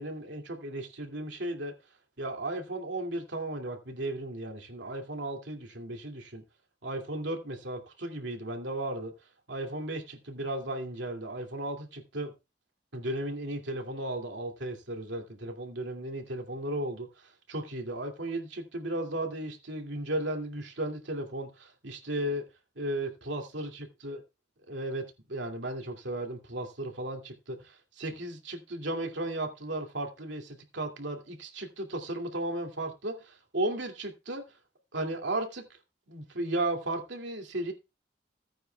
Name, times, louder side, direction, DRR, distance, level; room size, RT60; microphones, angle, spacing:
voice 1, 0.0-1.7 2.2-6.4 6.8-9.1 9.5-12.3 12.9-22.4 22.8-24.2 24.7-34.5 34.9-35.6 36.1-37.7, right 1 dB, 90° right, 2.5 m, -35 dB
16.5 x 9.2 x 2.3 m
head